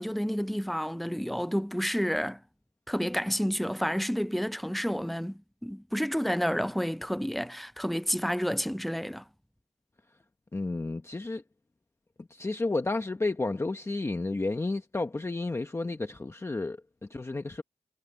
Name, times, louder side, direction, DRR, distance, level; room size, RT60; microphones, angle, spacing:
voice 1, 0.0-2.4 2.9-9.2, equal, ahead, 0.4 m, -30 dB
voice 2, 10.5-11.4 12.2-17.6, left 2 dB, 20° left, 0.9 m, -32 dB
wide cardioid pair, 175°, 14 cm